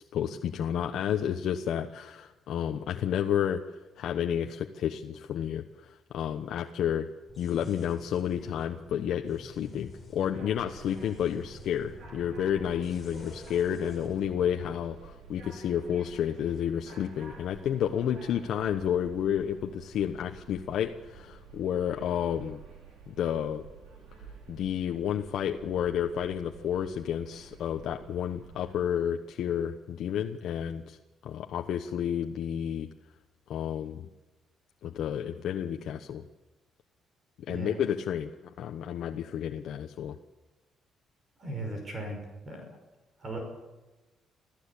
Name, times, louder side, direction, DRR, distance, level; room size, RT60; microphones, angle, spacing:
voice 1, 0.1-3.6 4.0-7.1 7.4-22.6 23.1-23.7 24.5-31.0 31.2-32.9 33.5-34.1 34.8-36.2 37.5-40.2, left 9 dB, 60° left, 4 dB, 1.1 m, -31 dB
sound 1, 7.3-14.9, left 3 dB, 10° left, 5.4 m, -50 dB
sound 2, 10.3-28.7, right 4 dB, 70° right, 5.7 m, -50 dB
voice 2, 41.4-42.2 42.4-42.6 43.2-43.4, right 2 dB, 30° right, 3 dB, 5.6 m, -37 dB
26.0 x 15.5 x 8.4 m, 1.1 s
cardioid pair, 165°, 0 cm